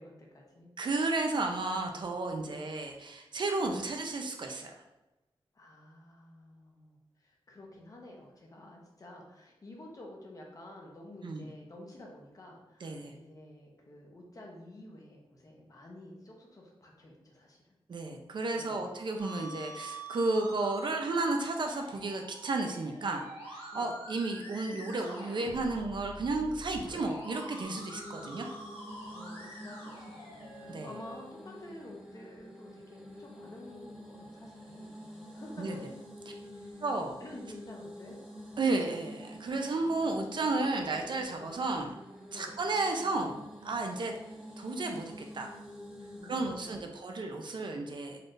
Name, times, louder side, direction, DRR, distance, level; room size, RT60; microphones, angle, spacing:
voice 1, 0.0-0.7 2.4-2.7 5.5-17.8 18.5-19.0 23.7-23.9 29.1-35.8 36.5-36.8 37.2-38.2 42.3-42.5 46.1-47.0, left 1 dB, 35° left, -1 dB, 0.7 m, -50 dB
voice 2, 0.8-4.7 11.2-11.4 12.8-13.1 17.9-28.5 30.7-30.9 35.6-35.8 36.8-37.2 38.6-42.0 42.3-43.4 43.6-44.1 44.6-45.5 46.2-48.2, right 3 dB, 55° right, 3 dB, 0.5 m, -33 dB
Musical instrument, 19.2-31.1, right 1 dB, 80° left, 1.3 m, -47 dB
sound 1, 27.6-46.5, equal, 10° right, 0.7 m, -48 dB
4.1 x 3.2 x 2.5 m, 1.0 s
wide cardioid pair, 170°, 10 cm